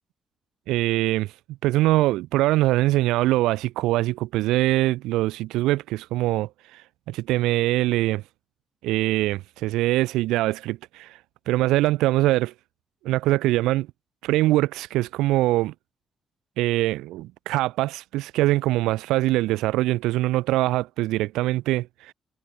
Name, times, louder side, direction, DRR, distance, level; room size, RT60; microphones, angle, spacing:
voice 1, 0.7-1.3 1.6-6.5 7.1-8.2 8.8-11.1 11.5-12.5 13.0-13.9 14.2-15.7 16.6-22.1, right 17 dB, 90° right, 0.8 m, -23 dB
supercardioid pair, 60°, 0 cm